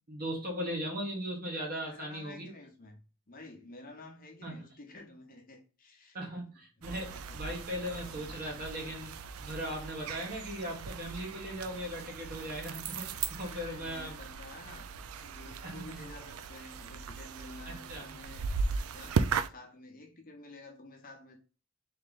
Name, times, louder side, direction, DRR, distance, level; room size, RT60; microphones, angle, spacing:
voice 1, 0.1-2.5 4.4-4.7 6.1-9.1 9.4-14.2 15.6-16.0 17.7-18.2, equal, 45° right, 1.5 m, -38 dB
voice 2, 1.8-6.2 7.1-7.8 13.4-14.9 15.2-18.5 18.9-21.4, left 2 dB, 45° left, 1.0 m, -51 dB
sound 1, 6.8-19.5, right 5 dB, 85° right, 0.4 m, -37 dB
3.2 x 3.1 x 3.9 m
head